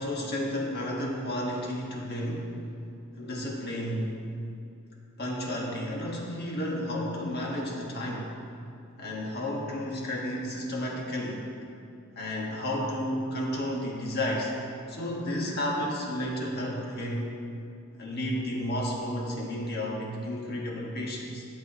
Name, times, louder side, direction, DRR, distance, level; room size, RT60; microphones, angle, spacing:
voice 1, 0.0-2.5 3.2-4.2 5.2-8.3 9.0-11.5 12.2-14.5 14.9-17.3 18.0-21.4, left 1 dB, 50° left, -2 dB, 1.6 m, -32 dB
12.0 x 8.0 x 3.0 m, 2.6 s
head